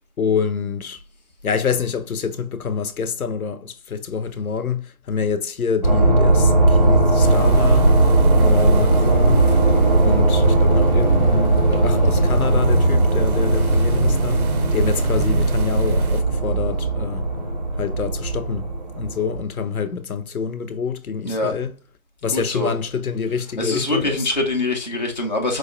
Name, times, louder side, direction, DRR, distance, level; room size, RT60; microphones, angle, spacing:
voice 1, 0.2-1.0 1.4-7.9 8.3-9.5 10.0-17.3 17.8-18.7 19.0-21.7 22.2-24.3, left 6 dB, 75° left, 0.6 m, -26 dB
sound 1, 5.8-19.4, right 2 dB, 35° right, 0.4 m, -18 dB
sound 2, 7.2-16.2, right 3 dB, 85° right, 0.6 m, -24 dB
voice 2, 22.3-22.7 23.6-25.6, left 2 dB, 35° left, 0.4 m, -24 dB
4.6 x 2.1 x 2.3 m
figure-of-eight pair, 145°, 43 cm